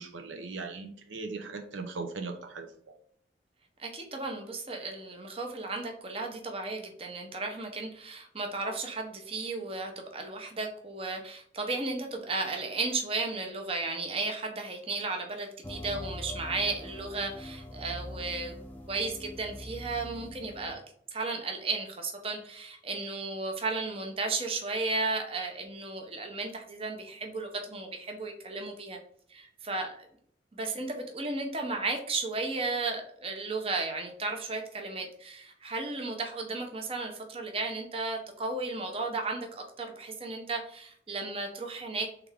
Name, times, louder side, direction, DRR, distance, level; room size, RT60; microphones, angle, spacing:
voice 1, 0.0-2.9, right 3 dB, 90° right, 6 dB, 0.6 m, -39 dB
voice 2, 3.8-18.6 18.9-20.8 21.1-29.0 29.3-30.1 30.5-42.3, right 3 dB, 30° right, 3 dB, 0.7 m, -34 dB
sound 1, 15.6-20.7, left 1 dB, 10° left, 0.5 m, -43 dB
3.6 x 3.4 x 3.4 m, 0.64 s
head